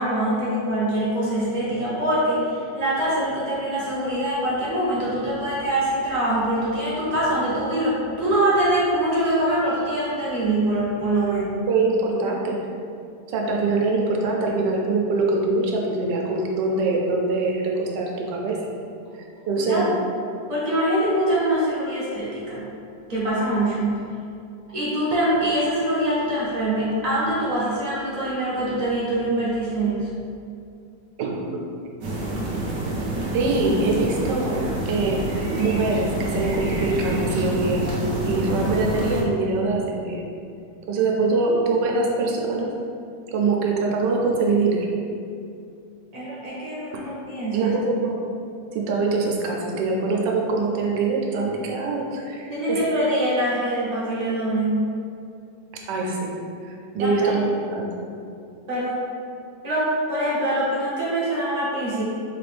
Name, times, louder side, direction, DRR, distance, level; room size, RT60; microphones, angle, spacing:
voice 1, 0.0-11.6 19.6-19.9 20.5-22.7 23.1-24.0 24.7-30.2 46.1-47.7 52.5-54.9 56.9-57.5 58.7-59.0 59.6-62.0, right 1 dB, 45° right, -8 dB, 0.5 m, -24 dB
voice 2, 11.7-12.5 13.3-18.6 19.4-19.9 31.2-31.6 33.3-35.2 35.6-37.9 38.3-40.2 40.9-42.7 43.3-44.9 46.9-47.0 47.5-48.2 48.7-52.8 55.9-56.3 56.6-57.9, right 3 dB, 85° right, -1 dB, 1.2 m, -23 dB
sound 1, 32.0-39.2, right 1 dB, 60° right, 1.0 m, -27 dB
3.8 x 2.5 x 3.3 m, 2.5 s
omnidirectional pair, 1.9 m